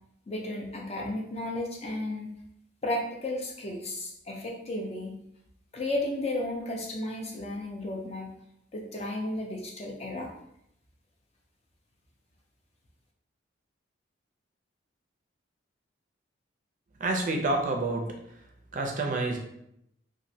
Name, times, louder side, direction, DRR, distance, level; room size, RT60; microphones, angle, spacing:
voice 1, 0.3-2.3 2.8-5.2 5.7-8.3 8.7-10.3, left 1 dB, 30° left, 0 dB, 0.5 m, -33 dB
voice 2, 17.0-18.4 18.7-19.4, right 2 dB, 40° right, 2 dB, 0.4 m, -29 dB
3.0 x 2.5 x 2.7 m, 0.76 s
head